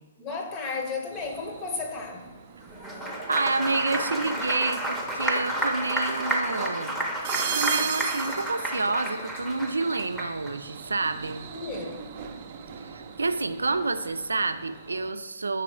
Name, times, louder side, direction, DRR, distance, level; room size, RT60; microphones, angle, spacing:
voice 1, 0.2-2.3 11.5-12.1, left 4 dB, 25° left, 3 dB, 1.0 m, -33 dB
sound 1, 1.1-15.1, right 7 dB, 40° right, 0.6 m, -39 dB
Applause, 2.7-10.5, right 1 dB, ahead, 0.8 m, -30 dB
voice 2, 3.3-7.0 7.5-11.5 12.8-15.6, right 3 dB, 90° right, 10 dB, 0.4 m, -29 dB
5.8 x 4.7 x 4.9 m, 1.2 s
hypercardioid pair, 135°, 0 cm